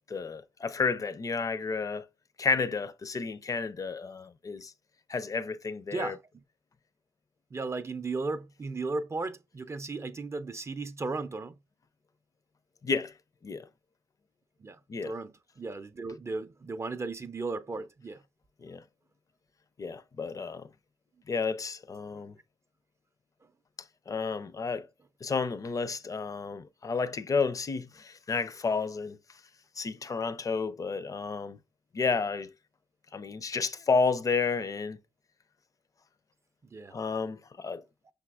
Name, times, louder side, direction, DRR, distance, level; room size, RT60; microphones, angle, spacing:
voice 1, 0.1-2.0 2.4-4.7 5.1-6.2 12.8-13.1 13.4-13.7 14.9-15.1 18.6-18.8 19.8-20.7 21.3-22.3 24.1-24.9 25.2-29.2 29.8-31.6 31.9-32.5 33.1-35.0 36.9-37.8, left 4 dB, 35° left, 0.5 m, -31 dB
voice 2, 7.5-11.5 14.6-18.2 36.7-37.0, right 3 dB, 30° right, 0.4 m, -35 dB
5.7 x 3.4 x 2.3 m
supercardioid pair, 60°, 10 cm